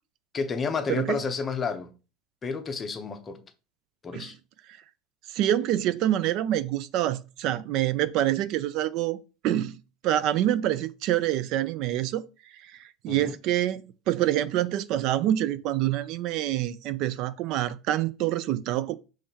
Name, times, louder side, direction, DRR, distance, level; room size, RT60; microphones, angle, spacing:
voice 1, 0.3-1.9 2.4-3.4 4.0-4.3 13.1-13.4, left 5 dB, 20° left, 0.7 m, -30 dB
voice 2, 5.3-9.2 9.4-9.7 10.0-12.2 12.5-19.0, right 12 dB, 55° right, 0.3 m, -26 dB
5.5 x 3.2 x 2.8 m
supercardioid pair, 135°, 0 cm